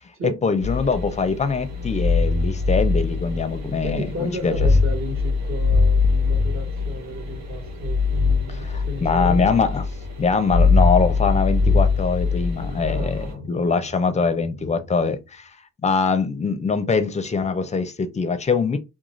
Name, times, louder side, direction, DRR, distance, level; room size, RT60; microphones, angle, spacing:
voice 1, 0.4-4.6 8.5-9.8 10.2-15.5 15.8-18.8, left 5 dB, 25° left, 0.5 m, -23 dB
sound 1, 0.6-14.9, left 4 dB, 60° right, 0.9 m, -22 dB
voice 2, 3.8-9.6 12.8-13.4, equal, 45° right, 1.3 m, -33 dB
2.4 x 2.3 x 3.1 m
cardioid pair, 90°, 30 cm